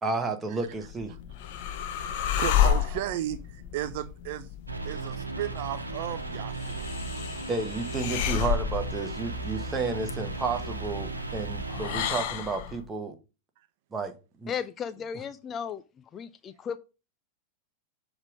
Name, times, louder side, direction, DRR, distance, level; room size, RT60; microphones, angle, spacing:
voice 1, 0.0-1.1 7.5-13.1 13.9-14.1 14.4-14.5, right 4 dB, 15° right, 1.2 m, -31 dB
sound 1, 0.7-12.8, left 10 dB, 50° left, 0.8 m, -32 dB
voice 2, 2.1-4.5 4.8-6.9, right 12 dB, 50° right, 0.5 m, -34 dB
sound 2, 4.7-12.1, right 3 dB, 80° right, 1.0 m, -36 dB
voice 3, 14.5-15.8 16.1-16.8, left 7 dB, 25° left, 0.4 m, -35 dB
7.3 x 3.5 x 4.9 m
figure-of-eight pair, 90°, 0 cm